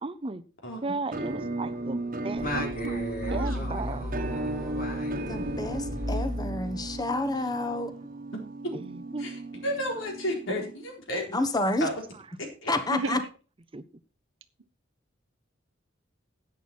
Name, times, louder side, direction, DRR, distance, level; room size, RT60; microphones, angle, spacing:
voice 1, 0.0-0.4 0.8-2.6 3.3-4.1 7.4-7.5 8.7-9.3 12.1-12.3 13.7-13.8, right 3 dB, 30° right, 0.7 m, -35 dB
Musical instrument, 1.1-10.9, right 2 dB, 45° right, 1.3 m, -36 dB
Singing, 2.4-7.1, left 1 dB, 45° left, 4.0 m, -34 dB
voice 2, 2.5-3.8 12.9-13.3, right 3 dB, 80° right, 1.0 m, -35 dB
voice 3, 5.3-7.9 11.3-11.9 12.7-13.2, left 2 dB, 20° left, 1.2 m, -29 dB
voice 4, 9.6-11.2 11.8-11.9 12.4-12.7, left 1 dB, 85° left, 3.9 m, -32 dB
11.0 x 8.8 x 4.3 m
head